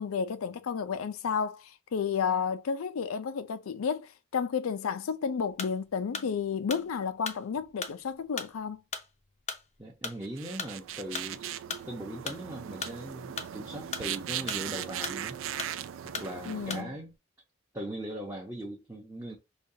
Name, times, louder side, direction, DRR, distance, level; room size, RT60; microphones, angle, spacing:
voice 1, 0.0-8.8 16.5-16.9, left 6 dB, 85° left, 0.4 m, -32 dB
sound 1, 5.5-17.1, left 5 dB, 35° left, 0.5 m, -39 dB
voice 2, 9.8-11.5 11.9-15.4 16.0-17.2 17.7-19.4, right 1 dB, 15° right, 0.7 m, -39 dB
sound 2, 10.2-16.8, right 10 dB, 65° right, 0.3 m, -38 dB
5.1 x 2.3 x 2.7 m
head